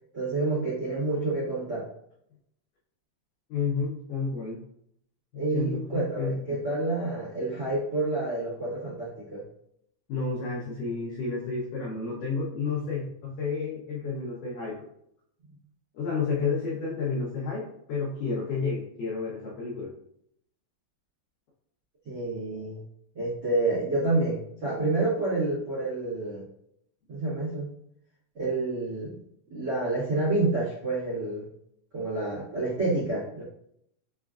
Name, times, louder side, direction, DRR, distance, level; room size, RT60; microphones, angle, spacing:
voice 1, 0.1-1.9 5.3-9.5 22.0-22.8 23.1-26.4 27.1-27.7 28.3-29.1 29.5-31.5 31.9-33.4, right 2 dB, 85° right, -10 dB, 0.9 m, -28 dB
voice 2, 3.5-4.6 5.3-6.6 10.1-14.8 15.9-19.9, left 4 dB, 85° left, -3 dB, 1.8 m, -31 dB
6.0 x 2.4 x 2.3 m, 0.72 s
omnidirectional pair, 4.6 m